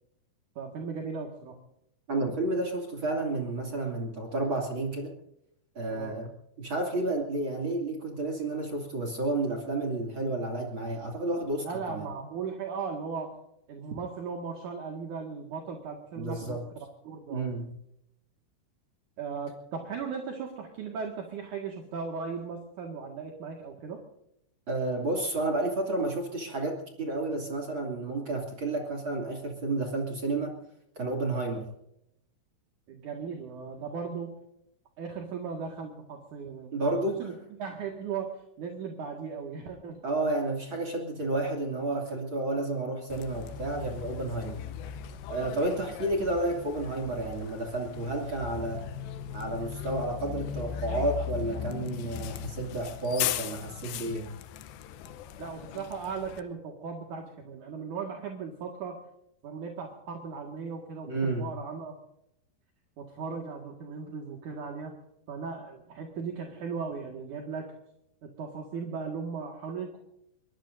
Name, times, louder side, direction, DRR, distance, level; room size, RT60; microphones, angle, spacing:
voice 1, 0.6-1.6 5.9-6.2 11.6-13.3 13.7-17.5 19.2-24.0 32.9-34.3 35.0-37.3 37.6-40.0 45.5-45.7 55.4-59.0 59.4-61.9 63.0-65.0 65.3-67.7 68.2-70.0, right 5 dB, 55° right, 1 dB, 2.5 m, -37 dB
voice 2, 2.1-5.1 5.7-6.3 6.6-12.1 16.2-16.6 17.3-17.7 24.7-30.5 31.0-31.7 36.7-37.1 40.0-44.6 45.3-48.8 49.3-54.3 61.1-61.5, right 2 dB, 35° right, 2 dB, 2.4 m, -31 dB
Bus, 43.1-56.4, left 10 dB, 75° left, 2.7 m, -38 dB
23.0 x 22.5 x 2.7 m, 0.78 s
omnidirectional pair, 5.8 m